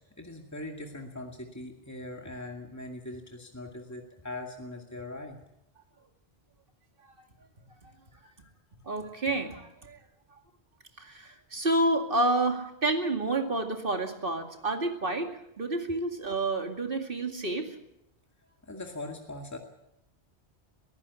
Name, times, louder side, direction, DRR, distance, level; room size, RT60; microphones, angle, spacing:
voice 1, 0.2-5.4 8.1-8.4 18.6-19.6, left 2 dB, 15° left, 2 dB, 2.2 m, -41 dB
voice 2, 8.9-10.0 11.0-15.3 15.6-17.7, right 2 dB, 55° right, 5 dB, 2.5 m, -29 dB
23.0 x 15.0 x 8.4 m, 0.83 s
omnidirectional pair, 1.1 m